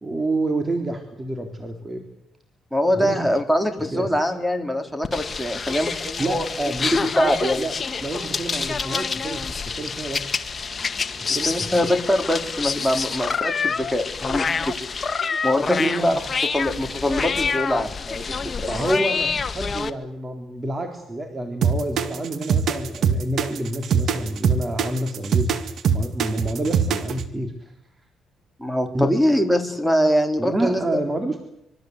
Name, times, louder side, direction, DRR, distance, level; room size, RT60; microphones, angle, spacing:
voice 1, 0.0-2.0 2.9-3.2 3.9-4.1 6.2-7.7 8.0-9.4 9.8-10.2 11.3-11.5 15.7-16.3 18.7-25.5 25.9-27.7 28.9-29.1 30.4-31.4, right 1 dB, 25° right, 4 dB, 3.9 m, -28 dB
voice 2, 2.7-6.5 6.9-7.6 11.5-14.7 15.4-16.2 16.5-18.7 28.6-31.0, equal, ahead, 7 dB, 4.1 m, -23 dB
sound 1, 5.0-19.9, left 5 dB, 35° left, 1.7 m, -27 dB
sound 2, 21.6-27.3, right 7 dB, 65° right, 2.2 m, -22 dB
25.5 x 23.5 x 8.2 m, 0.80 s
cardioid pair, 90°, 0 cm